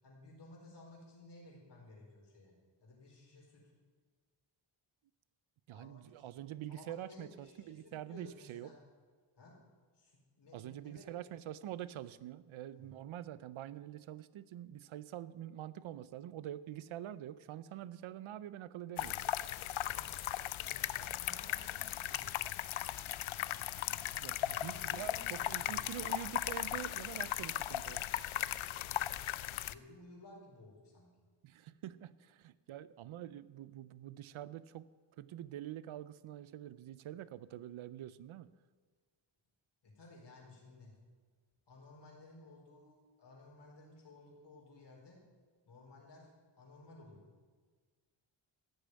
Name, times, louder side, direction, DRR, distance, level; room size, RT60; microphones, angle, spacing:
voice 1, 0.0-2.5 2.8-3.7 5.7-6.3 6.7-8.8 9.4-9.5 9.9-11.1 12.7-12.9 19.8-20.1 20.6-22.5 24.4-25.8 28.9-29.1 29.6-31.1 39.8-40.9 41.7-45.2 45.6-47.3, left 2 dB, 60° left, -2 dB, 4.6 m, -57 dB
voice 2, 5.7-8.7 10.5-19.2 23.8-28.0 31.4-34.9 35.2-38.5, right 12 dB, 90° right, 17 dB, 0.6 m, -46 dB
sound 1, 19.0-29.7, left 13 dB, 80° left, 0.6 m, -37 dB
14.5 x 6.9 x 9.4 m, 1.5 s
wide cardioid pair, 180°, 47 cm